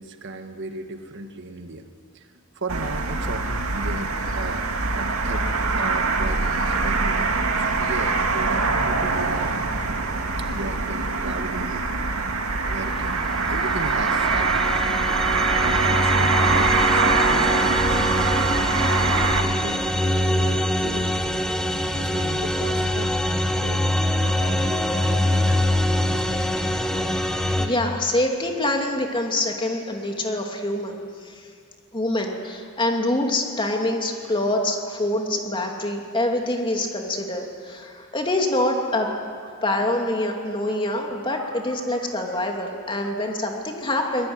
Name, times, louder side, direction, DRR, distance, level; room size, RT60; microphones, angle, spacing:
voice 1, 0.0-4.7 4.9-9.5 10.4-11.8 12.6-15.0 15.6-21.2 21.9-23.1 23.5-25.7 26.1-26.7 38.2-38.3 39.4-39.9 40.7-40.8 41.1-42.4 43.0-43.4, right 2 dB, 60° right, 6 dB, 1.7 m, -37 dB
sound 1, 2.7-19.4, right 3 dB, 80° right, 2.2 m, -23 dB
sound 2, 13.3-27.7, left 1 dB, 5° left, 1.4 m, -24 dB
voice 2, 27.6-31.3 31.9-39.1 39.6-44.3, left 1 dB, 25° left, 2 dB, 2.7 m, -25 dB
25.0 x 19.5 x 9.7 m, 2.3 s
head